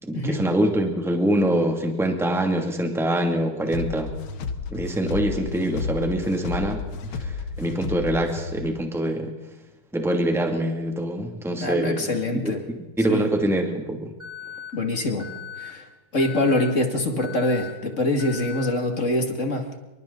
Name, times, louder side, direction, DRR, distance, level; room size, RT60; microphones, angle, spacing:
voice 1, 0.0-4.1 4.7-6.8 7.1-9.3 9.9-12.1 12.3-14.1, right 1 dB, ahead, 3 dB, 2.2 m, -24 dB
sound 1, 3.7-8.7, left 4 dB, 75° left, 2.1 m, -32 dB
voice 2, 11.6-12.6 13.1-13.3 14.7-15.3 15.6-15.8 16.1-19.7, left 1 dB, 35° left, 5 dB, 2.6 m, -24 dB
Alarm, 14.2-14.7 15.2-15.7 16.2-16.7 17.2-17.7 18.2-18.7, left 8 dB, 20° right, 3.7 m, -38 dB
27.0 x 25.0 x 4.0 m, 1.1 s
omnidirectional pair, 2.3 m